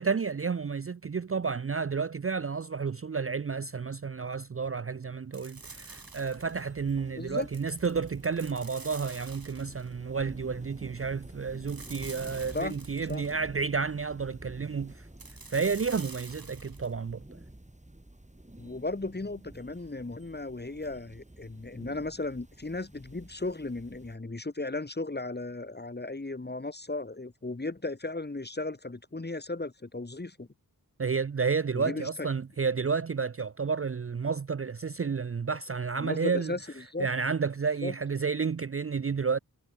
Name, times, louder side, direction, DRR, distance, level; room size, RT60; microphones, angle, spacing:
voice 1, 0.0-15.1 15.5-17.2 31.0-36.5 37.0-39.4, right 5 dB, 35° right, 0.5 m, -31 dB
sound 1, 5.3-6.7 7.4-9.9 11.7-13.4 15.2-16.9, right 3 dB, 60° right, 7.1 m, -47 dB
sound 2, 5.5-24.2, right 1 dB, 20° right, 7.4 m, -50 dB
voice 2, 7.1-7.5 12.5-12.8 13.1-13.2 18.6-30.5 31.7-32.1 36.0-37.1 37.8-37.9, left 2 dB, 25° left, 1.3 m, -36 dB
wide cardioid pair, 65°, 39 cm